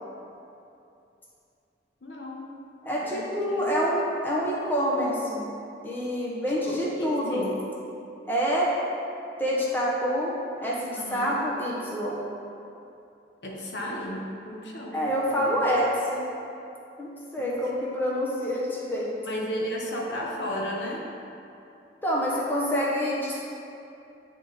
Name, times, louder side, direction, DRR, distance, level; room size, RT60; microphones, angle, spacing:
voice 1, 2.0-2.5 3.0-3.7 6.6-7.6 11.0-11.4 13.4-15.6 17.4-17.6 19.2-21.0, equal, 75° left, -2 dB, 1.0 m, -34 dB
voice 2, 2.8-5.5 5.8-7.5 8.3-8.7 9.4-12.2 14.9-16.2 17.0-19.1 22.0-23.3, equal, 10° left, -6 dB, 0.9 m, -27 dB
9.3 x 3.7 x 4.0 m, 2.7 s
head